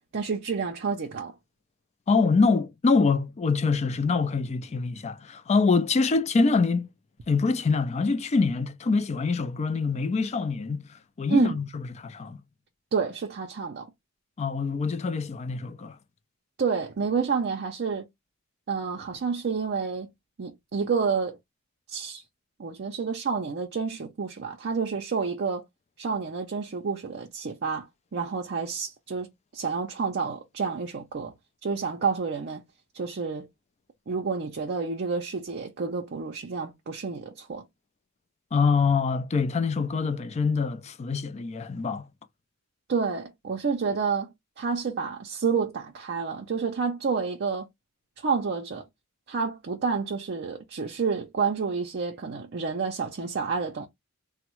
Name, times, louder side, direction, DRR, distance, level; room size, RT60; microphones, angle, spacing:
voice 1, 0.1-1.3 11.3-11.6 12.9-13.9 16.6-18.1 18.7-20.1 20.4-21.4 21.9-22.2 22.6-25.6 26.0-27.8 28.1-29.3 29.5-31.3 31.6-32.6 32.9-33.5 34.1-37.7 42.9-47.7 48.2-48.8 49.3-53.9, right 5 dB, 55° right, 0.5 m, -29 dB
voice 2, 2.1-6.9 7.3-10.9 11.2-12.4 14.4-16.0 38.5-42.1, left 4 dB, 30° left, 0.3 m, -25 dB
3.4 x 2.1 x 3.0 m
head